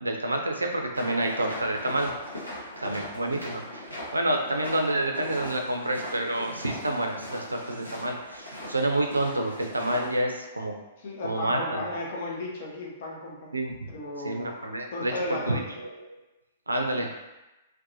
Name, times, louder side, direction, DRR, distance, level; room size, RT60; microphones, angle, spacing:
voice 1, 0.0-2.1 2.8-10.7 11.2-11.8 13.5-13.7 14.2-15.1 15.5-16.2 16.7-17.1, right 1 dB, 80° right, 2 dB, 0.4 m, -28 dB
sound 1, 0.9-10.2, equal, 85° left, 0.7 m, -40 dB
voice 2, 11.0-13.5 13.9-14.4 14.9-15.6 17.0-17.1, left 2 dB, 50° left, -2 dB, 0.6 m, -35 dB
2.6 x 2.2 x 2.6 m, 1.0 s
figure-of-eight pair, 110°, 0 cm